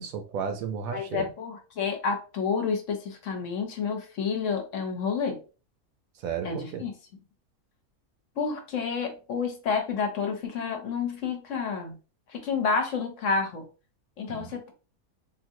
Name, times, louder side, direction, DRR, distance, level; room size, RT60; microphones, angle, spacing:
voice 1, 0.0-1.3 6.1-6.8 14.3-14.5, right 6 dB, 70° right, 1.0 m, -33 dB
voice 2, 0.9-5.4 6.4-6.9 8.4-11.9 12.3-13.7 14.2-14.7, left 5 dB, 60° left, 1.0 m, -29 dB
3.8 x 2.5 x 2.7 m
omnidirectional pair, 1.6 m